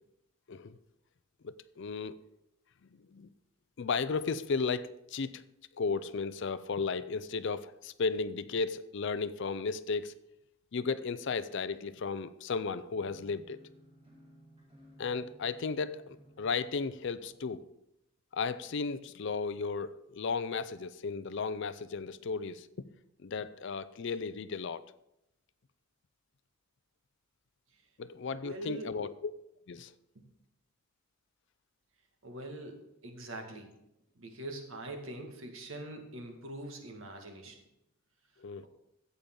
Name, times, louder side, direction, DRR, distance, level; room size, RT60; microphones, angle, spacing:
voice 1, 1.4-2.1 2.9-3.3 3.8-5.4 5.7-10.2 10.7-13.6 15.0-17.6 18.3-22.7 23.2-24.8 28.0-29.3 29.7-29.9 38.4-38.7, left 4 dB, 55° left, 0.5 m, -34 dB
sound 1, 12.9-17.5, equal, 25° right, 2.6 m, -59 dB
voice 2, 28.3-29.0 32.2-33.7 34.2-37.6, right 1 dB, 65° right, 1.9 m, -43 dB
14.0 x 8.4 x 3.8 m
head